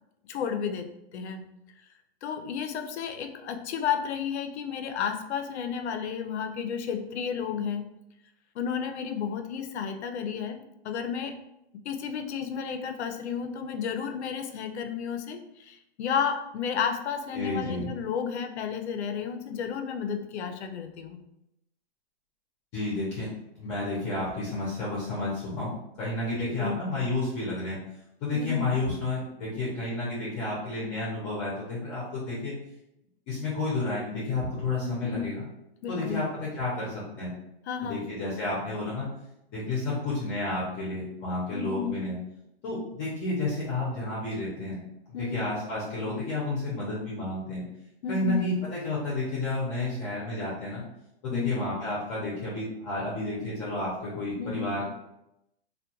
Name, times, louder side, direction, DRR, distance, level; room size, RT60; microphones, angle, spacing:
voice 1, 0.3-1.5 2.2-7.9 8.6-11.4 11.9-21.2 26.3-26.8 28.3-28.8 34.8-35.4 35.8-36.3 37.7-38.1 41.5-42.0 45.1-45.5 48.0-48.4 51.3-51.5 54.4-54.7, left 7 dB, 80° left, 7 dB, 0.5 m, -32 dB
voice 2, 17.3-17.9 22.7-23.3 23.5-27.8 28.2-32.5 33.3-35.4 35.9-37.3 37.8-39.1 39.5-42.2 42.6-44.8 45.2-47.6 48.1-50.8 51.2-54.8, left 2 dB, 25° left, -7 dB, 0.6 m, -31 dB
2.2 x 2.2 x 2.8 m, 0.85 s
hypercardioid pair, 155°, 33 cm